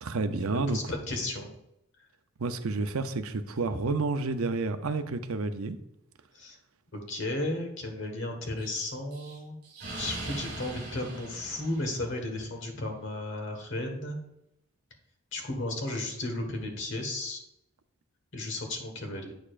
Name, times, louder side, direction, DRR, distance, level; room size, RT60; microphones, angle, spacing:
voice 1, 0.0-0.8 2.4-5.8, right 3 dB, 80° right, 9 dB, 0.6 m, -30 dB
voice 2, 0.5-1.5 6.3-6.6 6.9-9.6 9.9-14.2 15.3-17.4 18.3-19.3, left 2 dB, 60° left, 3 dB, 1.4 m, -34 dB
Explosion, 8.6-12.4, right 2 dB, 45° right, 2.7 m, -41 dB
8.5 x 6.7 x 2.5 m, 0.82 s
head